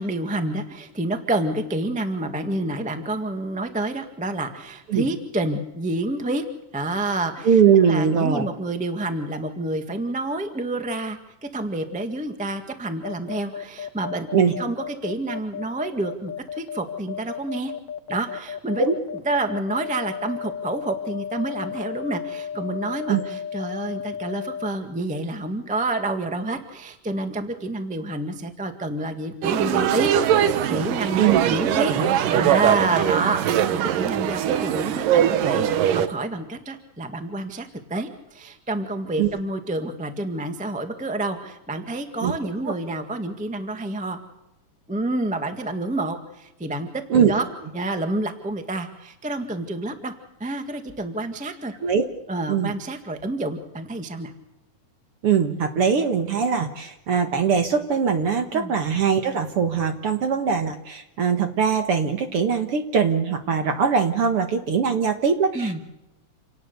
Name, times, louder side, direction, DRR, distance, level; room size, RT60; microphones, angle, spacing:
voice 1, 0.0-6.4 6.7-7.6 7.9-17.7 18.1-18.8 19.1-31.9 32.3-44.2 44.9-46.9 47.3-47.4 47.7-50.1 50.4-51.7 52.3-54.3 58.5-58.7 65.5-65.8, right 2 dB, 5° right, 7 dB, 0.7 m, -28 dB
voice 2, 7.4-8.5 14.3-14.5 18.8-19.0 23.1-23.2 31.2-31.4 31.9-32.1 39.2-39.3 42.2-42.3 42.7-42.8 47.1-47.3 51.8-52.1 52.5-52.7 55.2-65.8, right 6 dB, 55° right, 7 dB, 1.9 m, -21 dB
sound 1, 13.0-24.7, left 8 dB, 75° left, 1.0 m, -33 dB
sound 2, 29.4-36.1, right 10 dB, 80° right, 2.7 m, -21 dB
28.5 x 18.5 x 6.9 m, 0.89 s
omnidirectional pair, 3.8 m